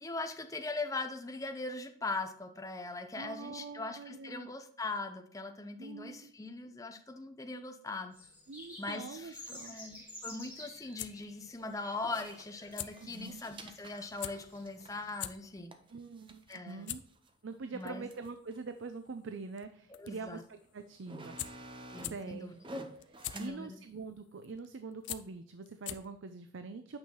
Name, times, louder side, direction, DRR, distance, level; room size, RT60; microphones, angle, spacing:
voice 1, 0.0-8.2 8.8-15.7 16.5-16.9 17.7-18.1 20.0-20.4 21.9-22.6 23.3-23.8, left 3 dB, 15° left, 6 dB, 0.6 m, -40 dB
voice 2, 3.1-4.5 5.8-6.3 8.5-9.8 13.0-13.4 15.9-17.0 17.4-21.5 22.1-22.5 23.1-27.0, right 4 dB, 70° right, 9 dB, 0.5 m, -44 dB
sound 1, 8.1-15.4, left 1 dB, 5° right, 3.0 m, -52 dB
sound 2, 10.5-26.3, left 13 dB, 60° left, 0.5 m, -47 dB
sound 3, 10.9-11.0 12.0-17.3 17.8-17.9 18.1-18.6 19.4-19.5 20.3-20.4 20.8-23.5, right 1 dB, 25° right, 0.7 m, -50 dB
8.8 x 5.5 x 2.9 m, 0.62 s
head